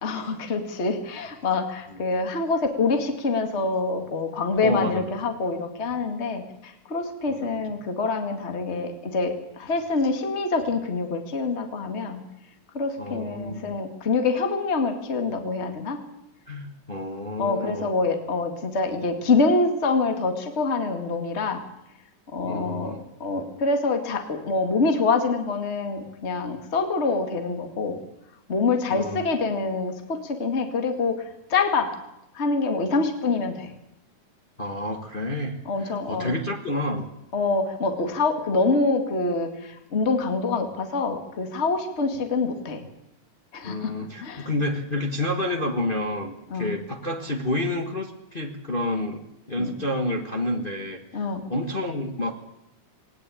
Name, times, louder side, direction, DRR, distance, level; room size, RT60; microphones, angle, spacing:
voice 1, 0.0-12.2 12.7-16.0 17.4-21.6 22.3-28.0 28.5-31.9 32.3-33.7 35.7-36.4 37.3-42.8 43.5-43.9 44.2-44.5 46.5-46.8 49.6-49.7 51.1-51.4, left 3 dB, 25° left, 5 dB, 2.0 m, -26 dB
voice 2, 4.6-5.0 7.3-7.6 13.0-13.7 16.5-17.9 22.4-23.0 28.9-29.3 34.6-37.1 43.6-52.3, left 1 dB, 65° left, 2 dB, 0.5 m, -29 dB
19.5 x 18.5 x 8.7 m, 0.84 s
omnidirectional pair, 3.7 m